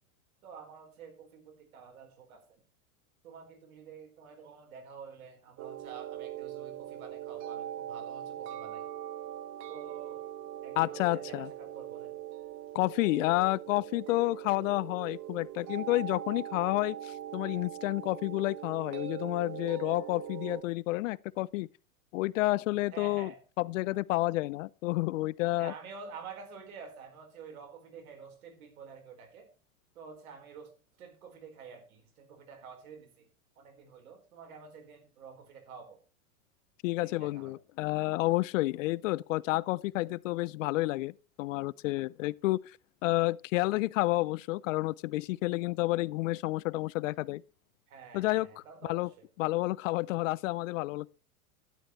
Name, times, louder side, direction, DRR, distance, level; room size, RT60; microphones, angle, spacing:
voice 1, 0.4-2.6 3.2-8.9 9.7-10.2 10.6-12.2 22.9-23.4 25.6-29.5 29.9-30.7 31.0-33.3 33.6-36.0 37.0-37.6 47.9-49.3, right 5 dB, 75° right, 4.4 m, -49 dB
sound 1, 5.6-20.6, right 11 dB, 45° right, 1.4 m, -41 dB
voice 2, 10.8-11.5 12.7-21.7 22.1-23.3 23.6-25.7 36.8-42.8 43.0-47.4 48.1-48.6 48.9-49.1 49.4-51.1, left 19 dB, 65° left, 0.6 m, -30 dB
12.0 x 11.0 x 3.1 m
hypercardioid pair, 115°, 42 cm